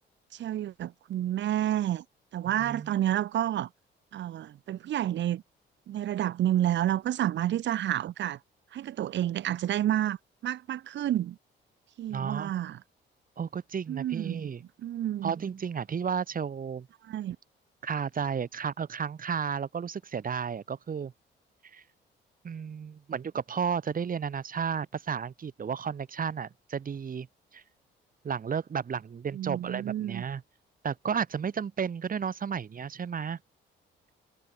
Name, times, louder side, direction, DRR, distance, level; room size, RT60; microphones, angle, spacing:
voice 1, 0.3-2.0 2.3-3.7 4.1-5.4 5.9-8.4 8.7-10.2 10.4-11.4 12.0-12.8 13.9-14.4 14.8-15.3 17.1-17.4 29.3-30.2, right 12 dB, 65° right, 0.9 m, -29 dB
voice 2, 2.6-3.0 12.1-12.5 13.4-14.6 15.2-16.9 17.8-21.1 21.7-21.8 22.4-27.3 27.5-27.6 28.2-30.4 30.8-33.4, right 7 dB, 45° right, 2.6 m, -33 dB
cardioid pair, 90°, 20 cm